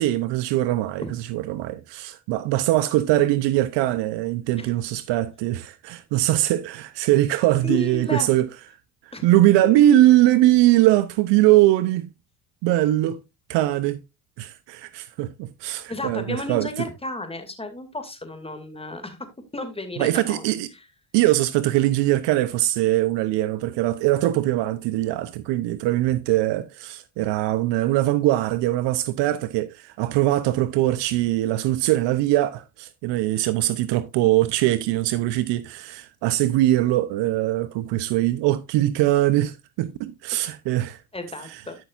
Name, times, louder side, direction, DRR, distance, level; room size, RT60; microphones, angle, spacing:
voice 1, 0.0-8.5 9.2-12.1 12.6-13.2 13.5-14.0 14.4-16.7 20.0-20.7 21.1-41.0, right 15 dB, 75° right, 0.7 m, -21 dB
voice 2, 7.6-8.3 9.1-9.3 15.9-19.3 19.5-20.4 20.7-20.8 41.1-41.8, left 2 dB, 15° left, 2.3 m, -33 dB
12.0 x 6.4 x 2.5 m
supercardioid pair, 80°, 42 cm